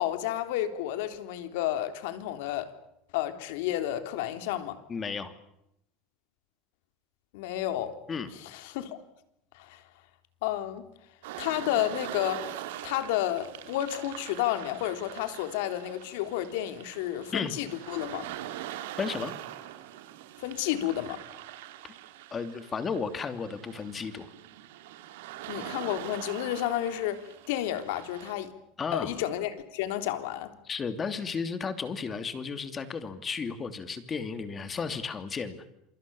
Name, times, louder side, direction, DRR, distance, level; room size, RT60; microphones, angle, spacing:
voice 1, 0.0-2.7 3.1-4.8 7.3-8.0 8.3-9.0 9.5-9.8 10.4-10.8 11.4-12.5 12.8-18.3 20.4-21.2 25.5-28.5 28.9-30.5, left 12 dB, 75° left, 3.6 m, -31 dB
voice 2, 4.9-5.3 8.1-8.3 17.3-17.5 19.0-19.3 22.3-24.3 28.8-29.2 30.7-35.6, left 5 dB, 20° left, 2.7 m, -33 dB
sound 1, 11.2-28.3, right 13 dB, 90° right, 3.1 m, -43 dB
28.0 x 24.5 x 7.1 m
supercardioid pair, 155°, 0 cm